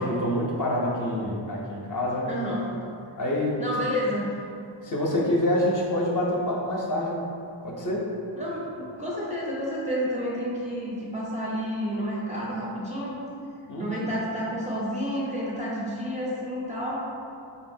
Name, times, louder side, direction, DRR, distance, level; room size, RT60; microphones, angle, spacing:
voice 1, 0.0-2.3 3.2-3.5 4.8-7.2 7.6-8.0 13.7-14.0, left 1 dB, 45° left, -4 dB, 0.5 m, -26 dB
voice 2, 2.3-2.7 3.6-4.3 8.4-13.2 13.8-17.0, equal, 15° right, -7 dB, 0.4 m, -30 dB
3.7 x 2.0 x 2.6 m, 2.5 s
wide cardioid pair, 70°, 47 cm